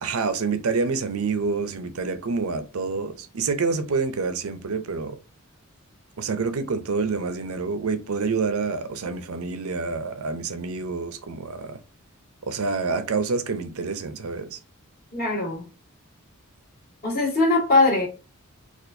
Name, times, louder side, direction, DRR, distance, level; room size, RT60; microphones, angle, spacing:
voice 1, 0.0-5.2 6.2-11.8 12.5-14.6, right 4 dB, 80° right, 0.6 m, -27 dB
voice 2, 15.1-15.7 17.0-18.1, left 2 dB, 45° left, 1.6 m, -21 dB
4.2 x 2.5 x 2.6 m
head